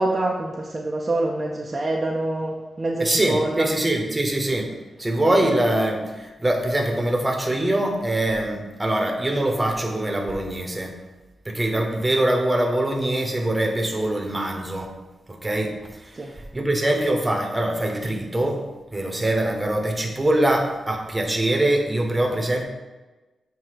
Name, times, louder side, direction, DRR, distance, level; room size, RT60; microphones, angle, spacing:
voice 1, 0.0-3.7 16.1-16.3, right 2 dB, 30° right, -1 dB, 0.5 m, -25 dB
voice 2, 3.0-4.7 5.0-11.0 11.4-14.9 15.3-18.6 18.9-22.6, right 1 dB, 15° right, 1 dB, 0.9 m, -23 dB
7.4 x 2.7 x 4.8 m, 1.2 s
cardioid pair, 100°, 0 cm